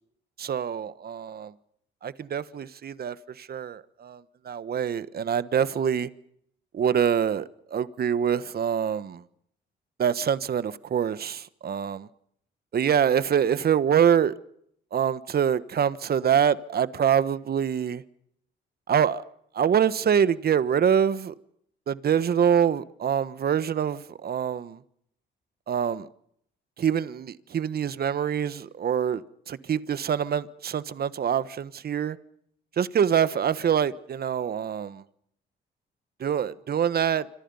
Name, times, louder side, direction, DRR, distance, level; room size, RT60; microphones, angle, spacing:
voice 1, 0.4-1.5 2.0-6.1 6.7-9.2 10.0-12.1 12.7-14.3 14.9-18.0 18.9-19.2 19.5-21.3 21.9-24.8 25.7-26.1 26.8-32.2 32.8-35.0 36.2-37.3, right 8 dB, 50° right, 1.3 m, -25 dB
26.5 x 26.5 x 5.6 m
cardioid pair, 90°, 20 cm